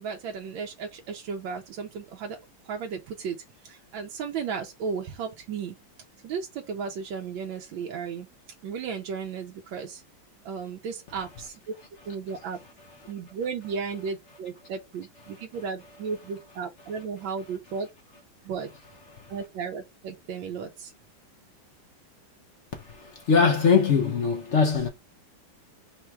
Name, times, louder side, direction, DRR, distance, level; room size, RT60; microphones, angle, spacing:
voice 1, 0.0-2.4 2.6-3.4 3.6-5.8 6.2-8.3 8.6-10.0 10.4-11.7 12.1-12.6 13.1-17.9 18.4-18.7 19.3-20.9, right 6 dB, 85° right, 1.4 m, -34 dB
voice 2, 23.3-24.9, left 5 dB, 70° left, 0.6 m, -21 dB
4.3 x 2.3 x 4.3 m
omnidirectional pair, 2.1 m